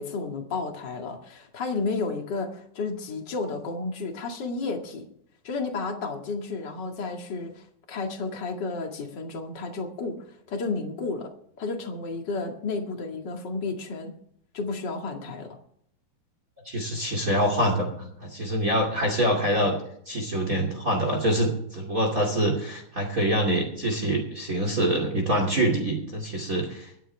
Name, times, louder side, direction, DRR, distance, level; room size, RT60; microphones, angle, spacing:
voice 1, 0.0-5.1 5.4-11.3 11.6-14.1 14.5-15.6, left 3 dB, 35° left, 2 dB, 2.2 m, -32 dB
voice 2, 16.6-19.8 20.1-26.9, right 1 dB, 25° right, 1 dB, 2.6 m, -25 dB
24.0 x 9.3 x 3.4 m, 0.69 s
omnidirectional pair, 4.0 m